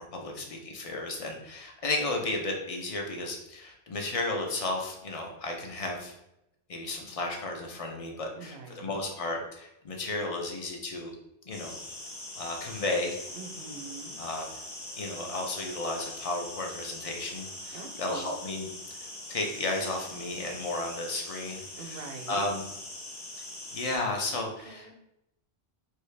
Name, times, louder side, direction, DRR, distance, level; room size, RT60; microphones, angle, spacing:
voice 1, 0.1-6.1 6.7-11.1 11.5-11.8 12.4-13.2 14.2-14.5 15.0-18.7 19.0-22.0 22.3-22.7 23.7-24.9, left 2 dB, 45° left, 1 dB, 0.6 m, -33 dB
voice 2, 8.3-9.0 13.3-14.2 17.7-18.4 21.8-22.5 24.6-24.9, right 4 dB, 70° right, 4 dB, 0.8 m, -44 dB
sound 1, 11.5-24.0, left 1 dB, 75° left, 1.7 m, -42 dB
3.1 x 2.7 x 3.2 m, 0.84 s
omnidirectional pair, 1.1 m